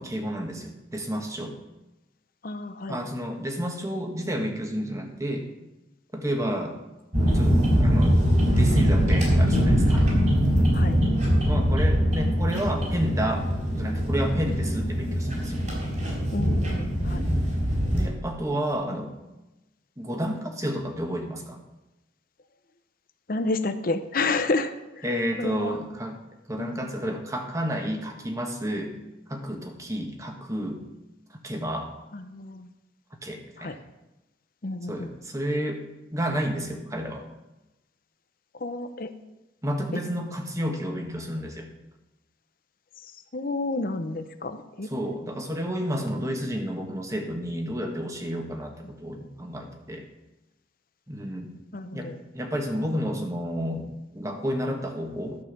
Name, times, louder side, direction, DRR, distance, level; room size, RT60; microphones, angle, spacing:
voice 1, 0.0-1.6 2.9-5.5 6.1-6.8 7.2-10.0 11.5-13.5 13.7-15.5 17.3-17.6 17.9-19.2 20.0-21.6 25.0-26.2 26.5-29.0 29.3-30.8 31.4-31.9 33.2-33.8 34.9-35.8 36.1-37.3 39.6-41.7 44.9-50.1 51.1-51.5 51.9-55.4, equal, 15° right, 3 dB, 1.4 m, -31 dB
voice 2, 2.4-3.0 10.7-11.0 16.3-17.3 23.3-25.1 25.4-25.8 26.6-26.9 32.1-32.7 33.6-33.8 34.6-35.1 38.5-39.1 39.9-40.0 43.0-43.1 43.3-44.9 51.7-52.2, left 3 dB, 50° left, 9 dB, 0.8 m, -30 dB
sound 1, 7.1-18.1, equal, 45° right, 4.2 m, -22 dB
12.0 x 5.6 x 6.7 m, 1.0 s
head